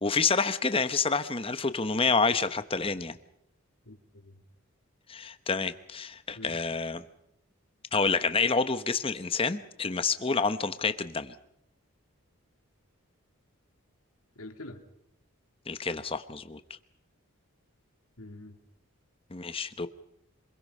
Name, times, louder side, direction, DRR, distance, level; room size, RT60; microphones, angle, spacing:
voice 1, 0.0-3.2 5.1-7.0 7.9-11.3 15.7-16.6 19.3-19.9, left 4 dB, 25° left, 11 dB, 0.9 m, -28 dB
voice 2, 3.9-4.4 6.4-6.6 14.4-14.8 18.2-18.6, left 2 dB, 80° left, 4 dB, 2.7 m, -45 dB
27.0 x 21.5 x 5.5 m, 0.77 s
head